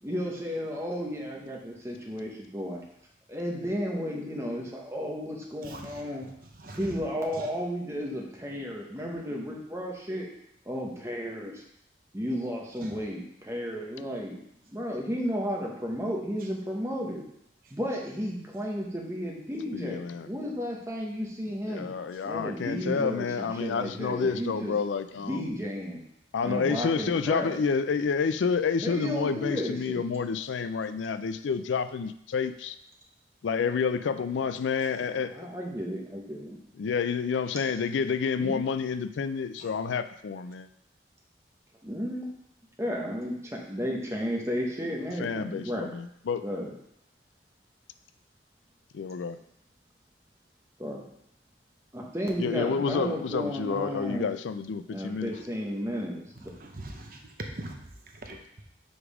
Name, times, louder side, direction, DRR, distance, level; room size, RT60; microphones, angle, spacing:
voice 1, 0.0-2.8 3.3-6.3 6.8-10.3 10.7-11.6 12.1-14.4 14.7-17.2 17.7-21.9 22.2-24.7 25.2-26.0 26.4-27.6 28.8-30.0 35.3-36.6 38.4-38.6 41.8-42.3 42.8-45.9 46.4-46.7 50.8-51.1 51.9-54.3 54.9-56.5, equal, 15° right, -1 dB, 1.1 m, -33 dB
voice 2, 19.7-20.3 21.7-25.5 26.3-32.8 33.4-35.5 36.8-40.7 45.2-46.5 48.9-49.4 52.4-55.3, left 5 dB, 85° left, 12 dB, 0.4 m, -29 dB
voice 3, 56.6-57.8 58.2-58.4, right 1 dB, 50° right, 2 dB, 0.9 m, -40 dB
5.1 x 4.9 x 4.9 m, 0.74 s
head